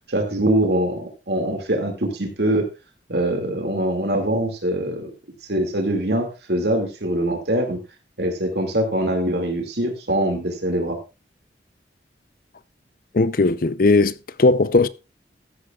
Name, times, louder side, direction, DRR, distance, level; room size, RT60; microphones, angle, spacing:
voice 1, 0.1-2.7 3.1-5.1 5.5-7.8 8.2-11.0, right 1 dB, 70° right, 2.4 m, -23 dB
voice 2, 13.1-14.9, left 3 dB, 55° left, 0.6 m, -18 dB
14.0 x 11.5 x 2.4 m
head